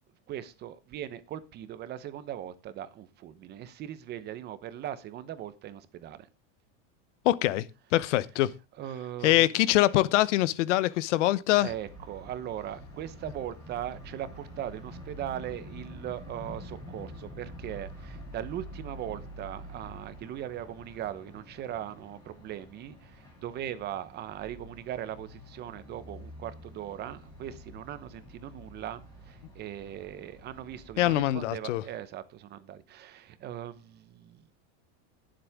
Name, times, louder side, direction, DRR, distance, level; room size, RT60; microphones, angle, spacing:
voice 1, 0.3-6.3 8.8-9.4 11.6-34.5, right 11 dB, 30° right, 0.9 m, -39 dB
voice 2, 7.2-7.7 7.9-8.5 9.2-11.7 31.0-31.8, left 15 dB, 85° left, 0.9 m, -24 dB
sound 1, 11.6-31.5, equal, 10° left, 7.8 m, -47 dB
18.5 x 7.7 x 3.6 m
supercardioid pair, 165°, 35 cm